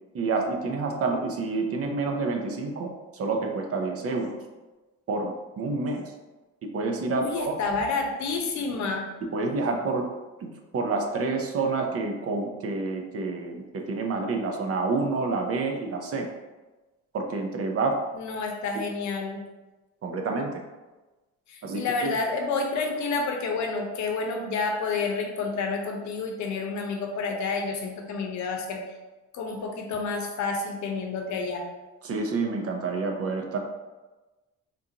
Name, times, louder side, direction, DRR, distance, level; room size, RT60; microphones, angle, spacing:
voice 1, 0.1-4.4 5.1-6.1 6.6-7.6 9.3-10.1 10.4-10.5 10.7-16.3 17.1-18.0 18.8-18.9 20.0-20.6 21.6-22.2 32.0-33.6, right 3 dB, 50° right, 3 dB, 0.6 m, -28 dB
voice 2, 7.2-9.1 18.2-19.4 21.5-28.8 29.3-31.6, left 4 dB, 70° left, 2 dB, 0.7 m, -29 dB
3.7 x 2.4 x 2.8 m, 1.2 s
cardioid pair, 90°, 30 cm